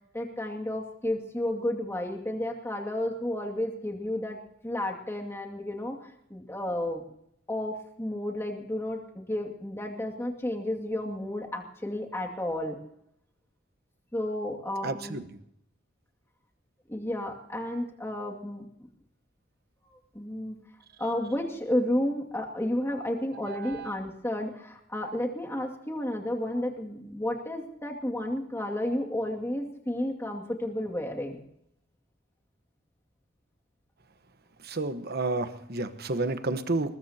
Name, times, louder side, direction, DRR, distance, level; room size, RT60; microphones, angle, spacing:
voice 1, 0.1-7.0 7.5-12.8 14.1-15.2 16.9-18.7 20.1-20.6 21.0-31.4, left 1 dB, 15° left, 0 dB, 2.3 m, -32 dB
voice 2, 14.8-15.2 23.4-23.9 34.6-37.0, right 3 dB, 55° right, 10 dB, 1.2 m, -31 dB
21.0 x 21.0 x 2.9 m, 0.74 s
head